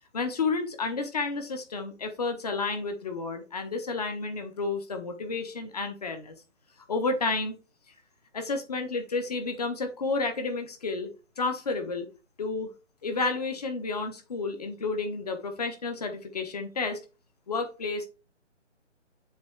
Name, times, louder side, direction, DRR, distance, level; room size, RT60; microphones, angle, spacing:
voice 1, 0.1-6.3 6.9-7.6 8.3-11.1 11.4-12.1 12.4-12.7 13.0-17.0 17.5-18.1, left 3 dB, 30° left, 7 dB, 1.4 m, -31 dB
7.3 x 3.8 x 4.6 m, 0.31 s
hypercardioid pair, 170°, 37 cm